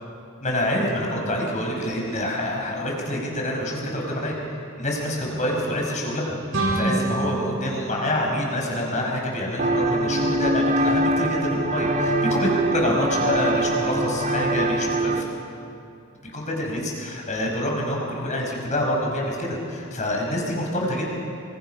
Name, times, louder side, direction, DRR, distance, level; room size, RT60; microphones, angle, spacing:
voice 1, 0.4-4.4 4.8-6.4 6.7-15.2 16.2-21.0, left 1 dB, 35° left, -1 dB, 5.4 m, -26 dB
sound 1, 6.5-9.3, right 2 dB, 70° right, 7.4 m, -28 dB
sound 2, 9.6-15.2, right 1 dB, 40° right, 1.6 m, -23 dB
26.0 x 23.5 x 5.7 m, 2.6 s
head